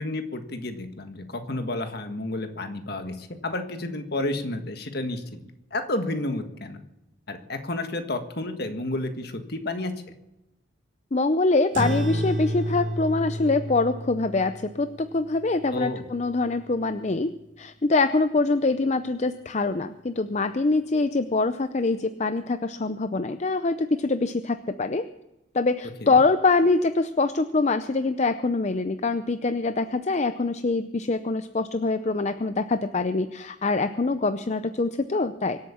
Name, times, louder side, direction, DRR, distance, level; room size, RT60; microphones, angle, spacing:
voice 1, 0.0-5.2 5.7-6.8 7.3-9.9 15.7-16.0 26.0-26.2, left 2 dB, 55° left, 7 dB, 1.6 m, -31 dB
voice 2, 11.1-17.3 17.6-25.0 25.5-35.6, left 3 dB, 35° left, 10 dB, 0.5 m, -24 dB
sound 1, 11.7-16.6, equal, 75° right, 2.6 m, -31 dB
24.0 x 8.3 x 7.2 m, 0.96 s
head